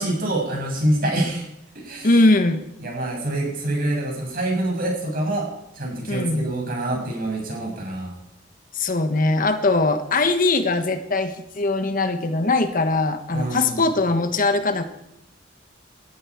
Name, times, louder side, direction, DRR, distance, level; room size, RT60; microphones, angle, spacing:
voice 1, 0.0-1.5 1.8-2.2 2.8-5.5 5.7-8.1 13.3-13.8, right 1 dB, 50° right, 0 dB, 6.9 m, -26 dB
voice 2, 2.0-2.6 6.1-6.5 8.7-14.9, left 2 dB, 45° left, 9 dB, 1.2 m, -21 dB
19.5 x 14.0 x 4.9 m, 0.84 s
head